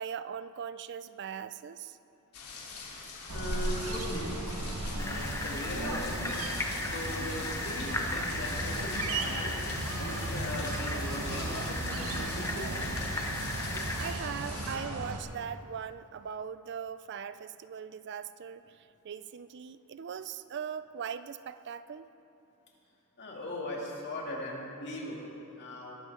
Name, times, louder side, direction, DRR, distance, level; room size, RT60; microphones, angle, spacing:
voice 1, 0.0-2.0 13.9-22.1, right 7 dB, 50° right, 13 dB, 0.4 m, -40 dB
sound 1, 2.3-14.7, left 4 dB, 80° left, 2.8 m, -44 dB
voice 2, 3.0-4.3 4.8-12.9 23.2-25.9, left 1 dB, 50° left, -3 dB, 2.7 m, -40 dB
sound 2, 3.3-15.2, right 2 dB, 80° right, 1.2 m, -36 dB
sound 3, 5.0-14.1, left 2 dB, 15° left, 0.9 m, -37 dB
21.5 x 12.5 x 3.7 m, 2.9 s
head